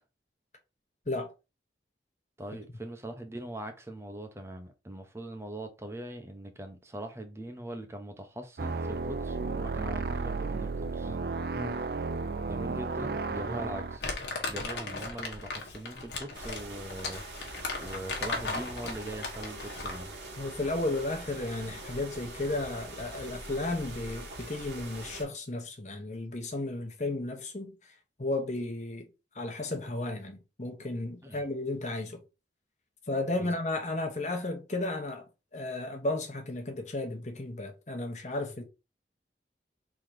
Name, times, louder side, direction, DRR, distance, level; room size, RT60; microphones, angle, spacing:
voice 1, 2.4-11.2 12.5-14.1 14.5-17.2 17.8-20.2 31.2-31.4 33.4-33.6, right 1 dB, 15° right, 0.6 m, -41 dB
sound 1, 8.6-14.0, right 4 dB, 55° right, 0.4 m, -33 dB
Crumpling crinkling, 14.0-20.1, left 3 dB, 75° left, 1.3 m, -36 dB
sound 2, 16.3-25.2, right 1 dB, 80° right, 1.3 m, -43 dB
voice 2, 20.4-27.9 28.2-29.1 29.3-32.2 33.1-35.3 35.5-38.6, left 2 dB, 40° left, 1.1 m, -34 dB
3.8 x 2.9 x 4.8 m
head